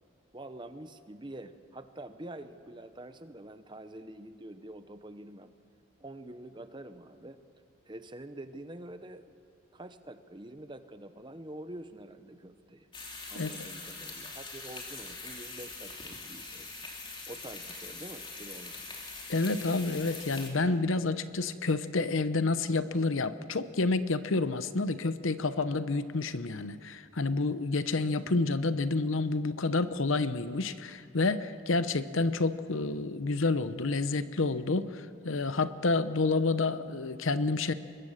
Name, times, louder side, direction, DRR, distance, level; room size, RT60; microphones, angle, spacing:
voice 1, 0.3-5.5 6.0-7.4 7.8-9.3 9.7-12.9 13.3-16.9 17.3-18.9, right 1 dB, 20° right, 10 dB, 0.8 m, -46 dB
sound 1, 12.9-20.5, left 3 dB, 25° left, 2.8 m, -43 dB
voice 2, 13.4-13.7 19.3-37.7, left 3 dB, 70° left, 13 dB, 0.8 m, -29 dB
25.0 x 21.5 x 6.6 m, 2.3 s
head